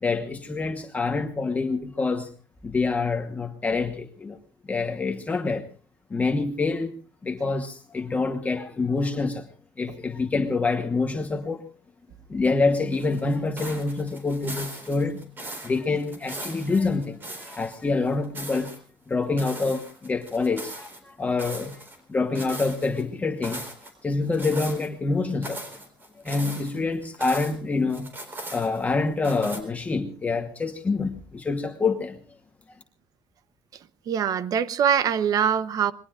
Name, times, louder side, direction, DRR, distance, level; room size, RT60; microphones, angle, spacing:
voice 1, 0.0-2.3 2.6-4.4 4.7-5.7 6.1-7.0 7.2-9.5 9.8-11.7 12.3-15.3 15.6-18.7 19.1-21.8 22.1-23.6 24.0-25.6 26.2-28.1 28.5-32.2, left 3 dB, 20° left, 1.2 m, -26 dB
sound 1, 12.9-17.8 18.1-18.8 19.4-21.0 21.4-22.0 22.3-23.0 23.4-23.9 24.3-24.9 25.3-27.6 27.9-28.9 29.2-29.6, right 1 dB, 25° right, 4.1 m, -39 dB
voice 2, 34.1-35.9, right 8 dB, 50° right, 0.9 m, -23 dB
27.0 x 21.0 x 2.5 m
cardioid pair, 155°, 8 cm